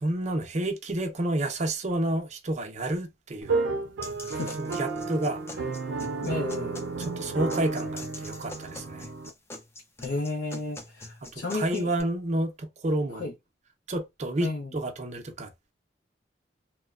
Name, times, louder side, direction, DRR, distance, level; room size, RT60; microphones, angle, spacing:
voice 1, 0.0-3.7 4.6-5.4 7.0-9.1 11.3-13.3 13.9-15.7, right 1 dB, 40° right, 0.5 m, -30 dB
sound 1, 3.4-9.3, right 3 dB, 90° right, 0.5 m, -32 dB
sound 2, 4.0-12.0, left 2 dB, 15° left, 0.4 m, -44 dB
voice 2, 4.2-4.6 6.2-6.8 10.0-11.9 13.1-13.3 14.4-14.7, left 2 dB, 75° left, 0.6 m, -33 dB
2.9 x 2.1 x 2.3 m
head